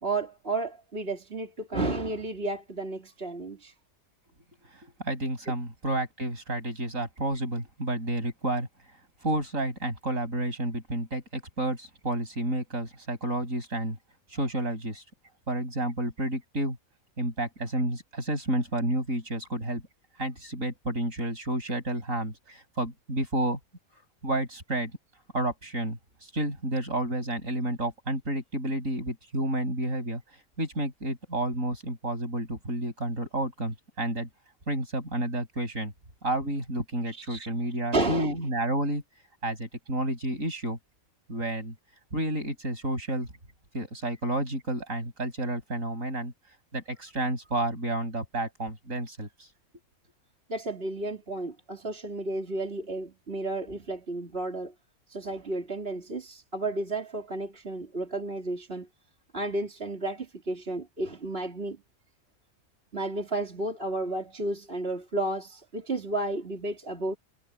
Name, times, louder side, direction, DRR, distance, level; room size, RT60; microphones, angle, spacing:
voice 1, 0.0-3.7 5.4-5.5 37.1-37.5 37.9-38.4 50.5-54.7 55.1-58.9 59.3-61.8 62.9-67.2, right 2 dB, 40° right, 3.4 m, -32 dB
voice 2, 4.8-8.7 9.2-14.0 14.3-15.0 15.5-16.8 17.2-19.8 20.2-23.6 24.2-24.9 25.3-26.0 26.3-30.2 30.6-34.3 34.7-35.9 36.2-39.0 39.4-40.8 41.3-41.7 42.1-43.3 43.7-46.3 46.7-49.3, right 1 dB, 60° right, 8.5 m, -30 dB
omnidirectional pair, 1.6 m